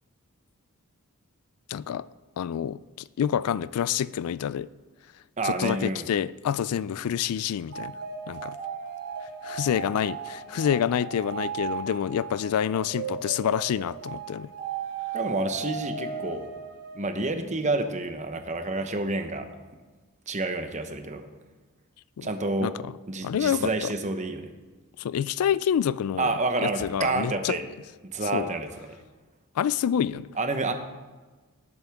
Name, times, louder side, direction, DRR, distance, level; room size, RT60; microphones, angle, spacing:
voice 1, 1.7-2.1 2.4-4.7 5.4-7.9 8.3-8.6 9.4-14.5 22.2-22.3 22.6-22.9 23.2-23.9 25.0-26.3 26.6-27.6 28.3-28.5 29.6-30.3, left 9 dB, 75° left, 0.3 m, -27 dB
voice 2, 5.4-6.1 15.1-16.5 16.9-19.5 20.3-21.3 22.2-22.7 23.1-24.5 26.2-27.6 28.0-29.0 30.4-30.7, right 2 dB, 35° right, 1.0 m, -29 dB
sound 1, 7.7-17.5, right 6 dB, 85° right, 2.7 m, -36 dB
19.0 x 8.0 x 3.5 m
head